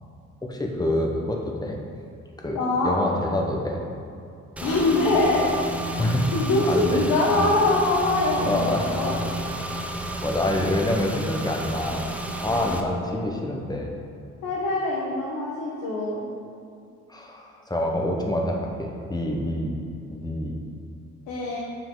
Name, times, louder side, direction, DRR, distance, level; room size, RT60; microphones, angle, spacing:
voice 1, 0.4-1.8 2.4-2.6 2.8-3.8 6.0-6.3 6.6-7.0 7.4-7.6 8.4-9.1 10.2-14.0 17.1-19.8 20.1-20.6, left 1 dB, 15° left, 0 dB, 1.1 m, -27 dB
voice 2, 2.5-2.9 4.6-5.5 6.3-9.1 12.5-12.6 14.4-16.2 21.3-21.6, left 2 dB, 85° left, -5 dB, 1.3 m, -23 dB
Car / Engine, 4.6-12.8, right 1 dB, 5° right, 0.6 m, -31 dB
7.2 x 5.9 x 3.9 m, 2.5 s
cardioid pair, 90°, 30 cm